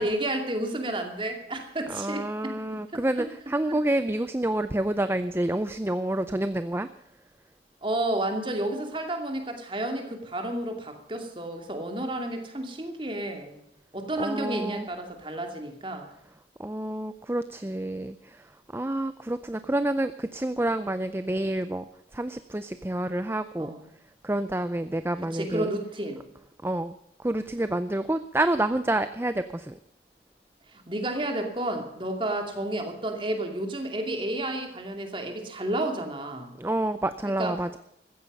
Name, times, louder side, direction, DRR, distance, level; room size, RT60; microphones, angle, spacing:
voice 1, 0.0-2.6 3.7-3.8 7.8-13.6 13.9-16.1 23.6-23.8 25.3-26.2 30.7-36.5 37.4-37.5, right 1 dB, 30° right, 4 dB, 2.6 m, -31 dB
voice 2, 1.9-6.9 14.2-14.9 16.6-23.7 24.2-25.7 26.6-26.9 27.2-29.8 36.6-37.8, right 1 dB, 15° right, 11 dB, 0.5 m, -28 dB
16.0 x 14.0 x 5.5 m, 0.79 s
head